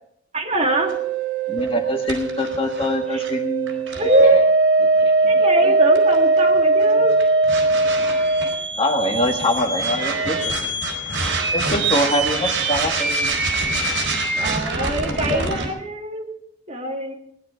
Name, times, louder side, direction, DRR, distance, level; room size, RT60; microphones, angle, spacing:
voice 1, 0.3-0.9 3.1-3.2 3.9-4.4 5.3-7.1 14.4-16.4 16.7-17.1, right 1 dB, 30° right, 0 dB, 2.4 m, -22 dB
sound 1, 0.6-15.7, right 3 dB, 80° right, 4.3 m, -21 dB
voice 2, 1.5-4.5 5.0-5.7 6.9-7.1 8.8-10.8 11.5-13.4 15.2-15.6, left 1 dB, 25° left, 2 dB, 1.7 m, -25 dB
19.5 x 11.0 x 5.1 m, 0.73 s
head